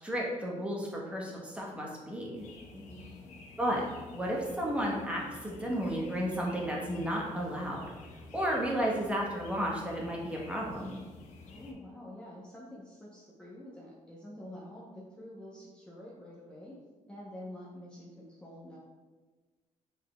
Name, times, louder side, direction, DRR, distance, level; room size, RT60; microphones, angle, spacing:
voice 1, 0.0-2.4 3.6-3.9 4.1-7.9 8.3-10.9, equal, 10° right, -3 dB, 1.0 m, -33 dB
sound 1, 2.3-11.7, left 3 dB, 75° left, 0.7 m, -51 dB
voice 2, 2.7-3.2 11.5-16.8 17.1-18.8, left 1 dB, 10° left, -6 dB, 0.7 m, -47 dB
6.1 x 3.7 x 2.2 m, 1.3 s
cardioid pair, 130°, 12 cm